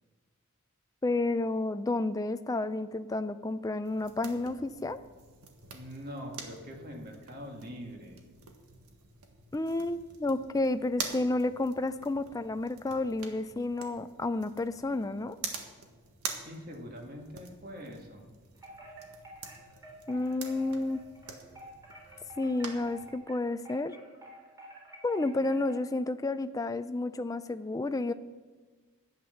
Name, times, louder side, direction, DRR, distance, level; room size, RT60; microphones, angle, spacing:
voice 1, 1.0-5.0 9.5-15.4 20.1-21.0 22.4-24.0 25.0-28.1, left 2 dB, 15° left, 11 dB, 0.3 m, -31 dB
sound 1, 3.8-23.1, right 5 dB, 85° right, 1.6 m, -46 dB
voice 2, 5.7-8.2 16.4-18.3 25.4-25.5, equal, 40° right, 1 dB, 2.1 m, -43 dB
Wind chime, 18.5-25.9, right 1 dB, 15° right, 3.4 m, -50 dB
11.5 x 8.9 x 7.0 m, 1.4 s
head